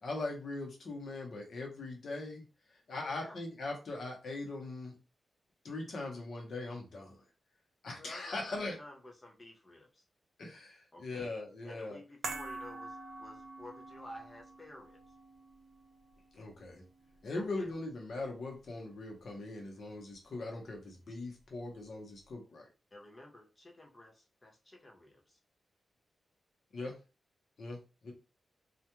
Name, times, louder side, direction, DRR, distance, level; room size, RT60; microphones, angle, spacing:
voice 1, 0.0-2.4 2.9-4.9 5.6-7.2 7.8-8.8 10.4-12.0 16.3-16.8 17.2-22.7 26.7-27.0 27.6-28.1, left 2 dB, 65° left, 1 dB, 0.9 m, -40 dB
voice 2, 2.9-3.4 7.9-10.0 10.9-11.3 11.6-15.0 17.4-17.7 22.9-25.4, left 1 dB, 25° left, 0 dB, 0.6 m, -52 dB
sound 1, 12.2-18.7 18.9-19.1, right 3 dB, 85° right, 0.5 m, -47 dB
2.4 x 2.2 x 2.9 m, 0.31 s
wide cardioid pair, 110°, 0 cm